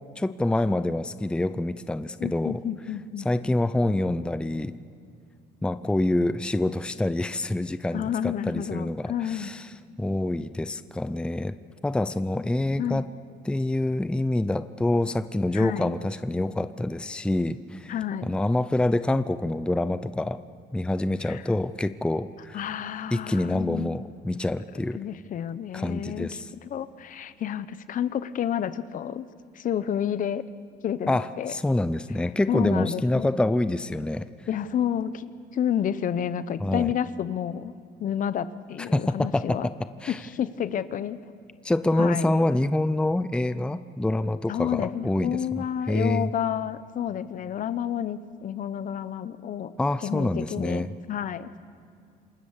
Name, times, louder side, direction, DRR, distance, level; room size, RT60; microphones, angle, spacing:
voice 1, 0.2-2.6 3.2-4.7 5.6-9.7 10.0-11.6 11.8-13.1 13.4-17.9 18.2-20.4 20.7-22.6 23.1-25.0 25.7-26.5 31.1-34.3 36.6-36.9 38.9-39.7 40.0-40.2 41.6-45.4 45.9-46.3 49.8-50.9, left 1 dB, 5° left, 12 dB, 0.6 m, -26 dB
voice 2, 2.2-3.3 7.9-9.5 12.8-13.0 15.5-15.9 17.9-18.3 21.2-21.4 22.5-24.0 24.7-26.3 26.6-29.2 29.5-30.4 30.8-31.5 32.5-33.3 34.5-37.7 38.0-39.7 40.1-41.2 42.0-42.3 44.5-49.7 50.0-51.6, left 9 dB, 50° left, 14 dB, 0.9 m, -30 dB
27.0 x 19.5 x 7.3 m, 2.4 s
cardioid pair, 110°, 17 cm